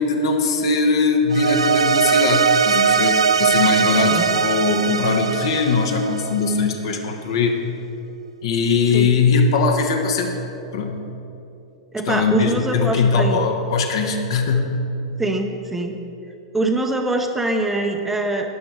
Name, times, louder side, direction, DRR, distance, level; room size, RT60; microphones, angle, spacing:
voice 1, 0.0-7.6 8.4-10.3 10.7-11.1 12.1-14.8, left 4 dB, 55° left, 3 dB, 1.4 m, -20 dB
sound 1, 1.3-6.6, right 6 dB, 75° right, 0.4 m, -20 dB
voice 2, 11.9-13.4 15.2-16.0 16.5-18.5, right 2 dB, 10° right, 4 dB, 0.9 m, -23 dB
12.5 x 10.0 x 4.7 m, 2.8 s
figure-of-eight pair, 100°, 3 cm